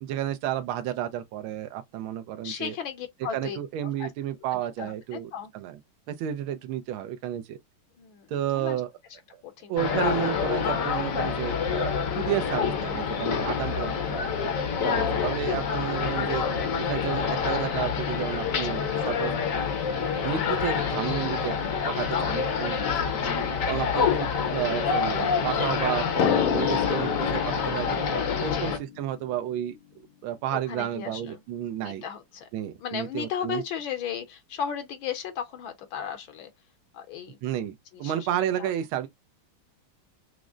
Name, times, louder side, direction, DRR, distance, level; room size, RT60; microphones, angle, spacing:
voice 1, 0.0-2.8 3.3-5.8 6.1-7.6 8.3-8.9 9.3-9.4 9.7-14.3 14.8-16.4 16.8-19.3 20.2-21.5 21.8-23.1 23.7-27.4 27.7-28.0 28.4-29.8 30.2-32.0 32.5-33.6 37.4-39.1, right 11 dB, 80° right, 1.4 m, -31 dB
voice 2, 2.4-3.6 4.0-4.1 4.5-5.5 8.0-8.3 8.5-8.8 9.4-9.7 10.6-10.7 14.9-15.3 18.7-18.8 22.4-22.7 23.2-23.4 28.5-28.7 30.5-31.4 31.8-32.5 32.8-36.5 36.9-37.4 37.9-38.2 38.6-38.7, left 8 dB, 75° left, 1.5 m, -36 dB
sound 1, 9.8-28.8, left 6 dB, 55° left, 1.0 m, -27 dB
Drum, 26.2-29.5, left 11 dB, 90° left, 1.5 m, -30 dB
6.0 x 2.0 x 2.4 m
omnidirectional pair, 2.3 m